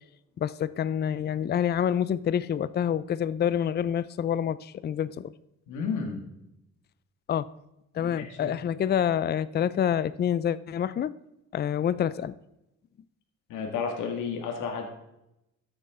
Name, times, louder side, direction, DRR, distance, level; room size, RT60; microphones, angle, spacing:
voice 1, 0.4-5.3 7.3-7.5 7.9-11.1 11.5-12.3, left 9 dB, 35° left, 17 dB, 0.4 m, -27 dB
voice 2, 5.7-6.2 8.0-8.5 13.5-14.8, left 5 dB, 90° left, 3 dB, 1.9 m, -32 dB
13.0 x 8.0 x 3.7 m, 0.88 s
cardioid pair, 90°, 30 cm